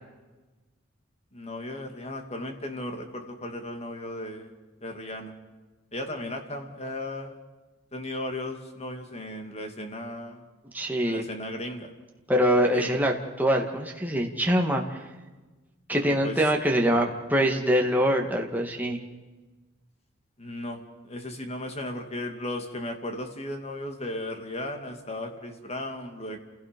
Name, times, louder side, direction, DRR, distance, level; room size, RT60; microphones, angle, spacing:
voice 1, 1.3-4.5 4.8-5.3 5.9-7.4 7.9-10.4 11.0-11.9 12.7-12.9 15.9-16.4 20.4-26.4, left 1 dB, 30° left, 5 dB, 2.5 m, -36 dB
voice 2, 10.7-11.2 12.3-14.8 15.9-19.0, equal, 10° right, 1 dB, 2.1 m, -24 dB
29.5 x 17.0 x 5.4 m, 1.2 s
head